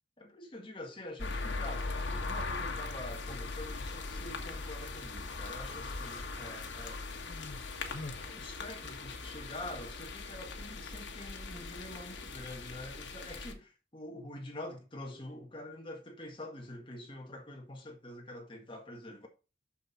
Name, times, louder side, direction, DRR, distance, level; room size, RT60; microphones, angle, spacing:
voice 1, 0.2-7.0 8.2-19.3, left 1 dB, 25° left, 1.7 m, -46 dB
sound 1, 1.2-13.5, left 3 dB, 75° left, 1.5 m, -40 dB
Human voice, 5.6-6.3 7.2-9.2, left 2 dB, 45° left, 1.3 m, -48 dB
6.4 x 6.4 x 4.2 m
head